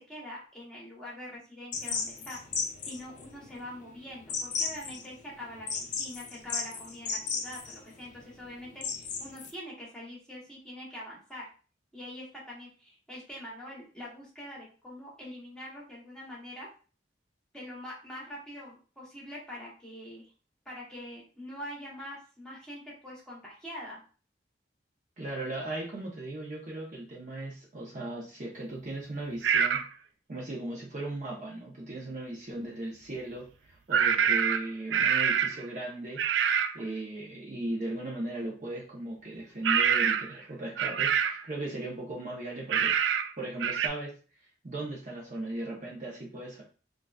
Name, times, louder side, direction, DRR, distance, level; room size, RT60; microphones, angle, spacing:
voice 1, 0.0-2.4 2.8-11.4 11.9-16.7 17.5-20.3 20.6-24.0, left 1 dB, 5° left, -5 dB, 1.2 m, -44 dB
sound 1, 1.7-9.5, left 5 dB, 45° left, 0.5 m, -36 dB
voice 2, 25.2-29.9 30.3-36.2 36.7-43.0 43.4-44.2 44.6-46.6, right 2 dB, 45° right, -3 dB, 0.8 m, -37 dB
sound 2, 29.4-29.9 33.9-35.6 36.2-36.8 39.6-40.4 40.8-41.4 42.7-43.3 43.6-43.9, right 8 dB, 80° right, 0.3 m, -25 dB
3.8 x 2.4 x 2.3 m, 0.37 s
head